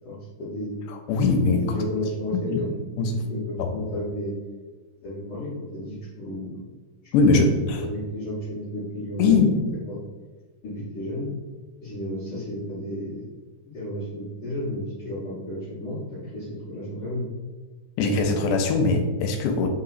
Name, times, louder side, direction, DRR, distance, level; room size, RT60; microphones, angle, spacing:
voice 1, 0.0-0.7 1.5-2.7 3.3-4.3 5.0-6.6 7.3-7.5 7.8-9.5 9.8-10.0 10.6-11.3 11.8-13.2 13.7-17.2, equal, 60° left, -10 dB, 1.5 m, -32 dB
voice 2, 0.9-1.7 2.5-2.6 3.0-3.3 3.6-3.7 7.1-7.8 9.2-9.5 18.0-19.7, left 4 dB, 90° left, 3 dB, 2.1 m, -21 dB
4.3 x 3.8 x 2.5 m, 1.3 s
omnidirectional pair, 3.6 m